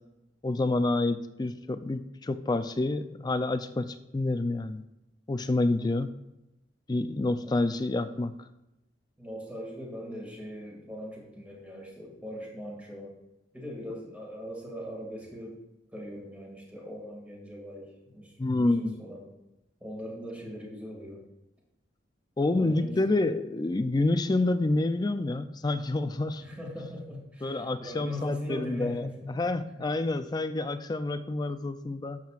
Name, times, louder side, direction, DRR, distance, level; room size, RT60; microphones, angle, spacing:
voice 1, 0.4-4.8 5.3-6.1 6.9-8.3 18.4-19.0 22.4-26.4 27.4-32.2, left 2 dB, 20° left, 11 dB, 0.4 m, -28 dB
voice 2, 9.2-13.1 13.5-15.6 15.9-19.3 19.8-21.2 22.5-23.0 26.4-29.4 29.7-29.8, left 1 dB, 10° right, -2 dB, 2.3 m, -40 dB
11.5 x 7.4 x 2.5 m, 0.92 s
head